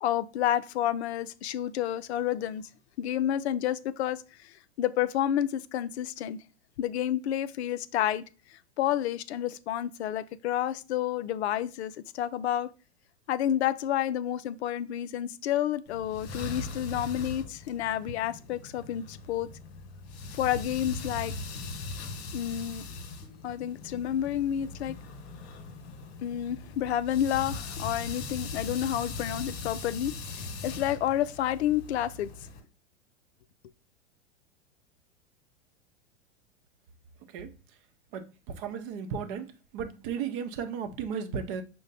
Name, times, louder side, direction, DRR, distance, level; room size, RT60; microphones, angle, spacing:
voice 1, 0.0-2.7 3.0-6.4 6.8-8.2 8.5-12.7 13.3-19.5 20.3-21.3 22.3-22.8 23.4-25.0 26.2-32.3, left 11 dB, 65° left, 0.5 m, -30 dB
sound 1, 15.9-32.6, left 3 dB, 40° left, 1.2 m, -40 dB
voice 2, 38.1-41.6, right 7 dB, 45° right, 0.7 m, -35 dB
5.1 x 2.2 x 4.0 m
hypercardioid pair, 95°, 36 cm